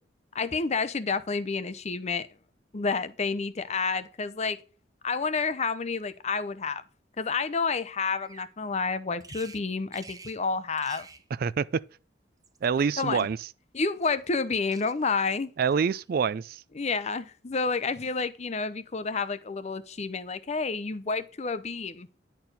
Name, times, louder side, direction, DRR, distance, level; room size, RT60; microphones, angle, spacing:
voice 1, 0.3-2.3 2.7-4.6 5.0-6.8 7.2-11.1 13.0-13.3 13.7-15.5 16.7-22.1, left 4 dB, 35° left, 0.6 m, -29 dB
Bird vocalization bird call bird song, 8.2-8.5 9.2-9.6 9.9-10.4 10.7-11.3 12.3-13.3 14.0-14.5 14.7-15.2 15.7-16.1, right 4 dB, 20° right, 0.8 m, -50 dB
voice 2, 11.4-11.8 12.6-13.4 15.6-16.6, right 6 dB, 50° right, 0.4 m, -26 dB
10.0 x 4.5 x 5.2 m
head